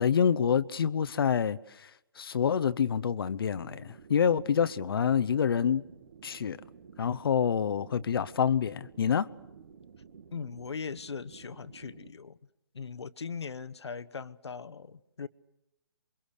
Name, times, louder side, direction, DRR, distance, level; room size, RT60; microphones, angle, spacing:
voice 1, 0.0-1.9 2.2-5.8 6.2-6.6 7.0-9.3, left 7 dB, 60° left, 0.8 m, -27 dB
sound 1, 3.1-12.1, right 6 dB, 60° right, 1.7 m, -53 dB
voice 2, 10.3-12.4 12.7-15.3, left 5 dB, 85° left, 1.1 m, -40 dB
28.0 x 23.5 x 6.6 m
hypercardioid pair, 155°, 14 cm